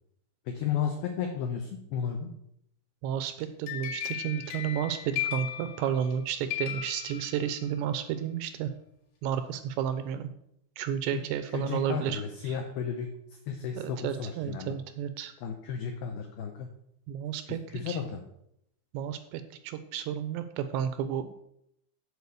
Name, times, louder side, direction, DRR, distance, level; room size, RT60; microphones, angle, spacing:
voice 1, 0.5-2.3 11.1-11.2 11.5-13.1 13.5-14.7 15.4-16.7 17.5-18.2, left 7 dB, 90° left, 4 dB, 2.1 m, -33 dB
voice 2, 3.0-8.7 9.2-10.3 10.8-12.6 13.8-15.3 17.1-17.6 17.9-18.0 18.9-21.3, right 9 dB, 85° right, 10 dB, 2.6 m, -32 dB
sound 1, 3.4-6.2 6.5-7.8, left 12 dB, 55° left, 3.2 m, -36 dB
8.0 x 4.8 x 6.9 m, 0.75 s
omnidirectional pair, 5.3 m